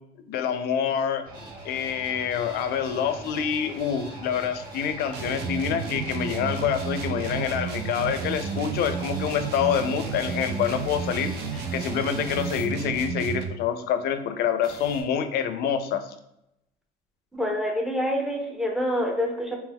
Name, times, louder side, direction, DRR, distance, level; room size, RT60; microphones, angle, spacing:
voice 1, 0.3-1.2 1.6-16.0, left 8 dB, 70° left, 9 dB, 0.4 m, -27 dB
sound 1, 1.2-12.6 14.6-15.0, right 2 dB, 60° right, 0.9 m, -42 dB
sound 2, 5.1-13.6, right 6 dB, 80° right, 0.4 m, -32 dB
voice 2, 17.3-19.6, equal, 5° right, 0 dB, 0.6 m, -26 dB
3.3 x 2.8 x 2.2 m, 0.82 s
cardioid pair, 110°, 17 cm